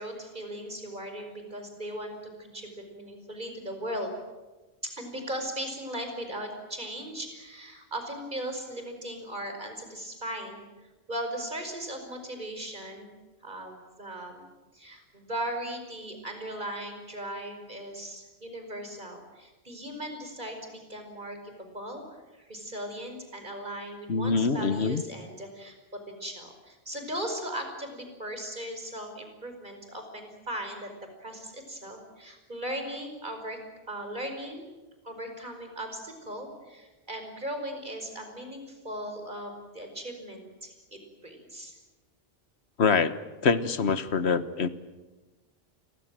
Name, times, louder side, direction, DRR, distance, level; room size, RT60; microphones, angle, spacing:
voice 1, 0.0-4.1 4.8-10.7 11.1-13.1 13.4-14.5 14.7-30.9 31.2-33.6 33.9-34.7 35.0-41.7, right 1 dB, 45° right, 5 dB, 5.4 m, -38 dB
voice 2, 24.1-25.0 42.8-44.7, left 5 dB, 85° left, 12 dB, 1.5 m, -25 dB
29.5 x 23.0 x 7.6 m, 1.2 s
omnidirectional pair, 1.1 m